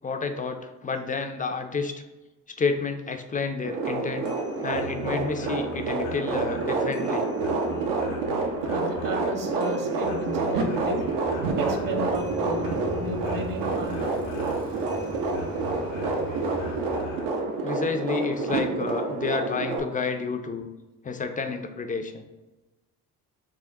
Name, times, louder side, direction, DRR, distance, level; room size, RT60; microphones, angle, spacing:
voice 1, 0.0-1.9 2.6-4.3 4.6-7.3 17.6-20.7 21.0-22.3, left 4 dB, 20° left, 7 dB, 0.3 m, -30 dB
sound 1, 3.6-19.8, right 3 dB, 80° right, 0.7 m, -28 dB
sound 2, 4.1-17.4, left 1 dB, 85° left, 0.7 m, -41 dB
voice 2, 8.7-11.0 11.6-12.7 13.0-14.1, right 2 dB, 50° right, 4 dB, 0.9 m, -33 dB
Bicycle, 10.0-17.5, equal, 65° right, 1.5 m, -42 dB
5.9 x 2.2 x 2.6 m, 1.1 s
supercardioid pair, 55°, 44 cm